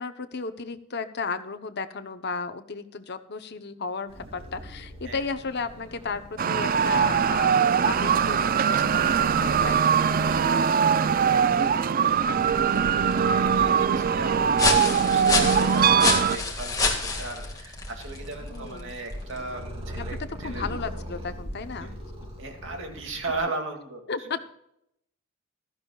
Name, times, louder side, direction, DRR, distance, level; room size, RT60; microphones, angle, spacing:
voice 1, 0.0-10.2 18.4-19.0 20.0-20.1 20.4-21.9 24.1-24.4, left 4 dB, 55° left, 10 dB, 0.9 m, -34 dB
Purr, 4.1-23.4, equal, 30° right, 2.6 m, -42 dB
sound 1, 6.4-16.4, right 7 dB, 45° right, 0.4 m, -22 dB
voice 2, 9.9-20.6 21.8-21.9 22.4-24.0, right 2 dB, 65° right, 3 dB, 2.4 m, -38 dB
sound 2, 12.1-19.6, left 3 dB, 20° left, 2.0 m, -29 dB
15.5 x 13.5 x 2.4 m, 0.77 s
head